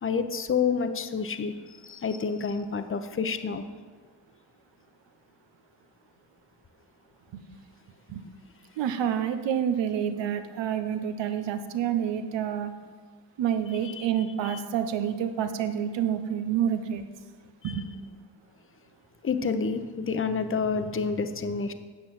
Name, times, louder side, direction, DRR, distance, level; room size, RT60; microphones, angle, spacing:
voice 1, 0.0-3.6 13.8-14.1 14.4-14.6 17.6-17.8 19.2-21.7, left 5 dB, 30° left, 9 dB, 0.9 m, -29 dB
voice 2, 8.8-12.7 13.4-17.0 17.6-17.9, right 9 dB, 80° right, 9 dB, 0.9 m, -28 dB
9.3 x 6.1 x 7.5 m, 1.5 s
cardioid pair, 70°, 43 cm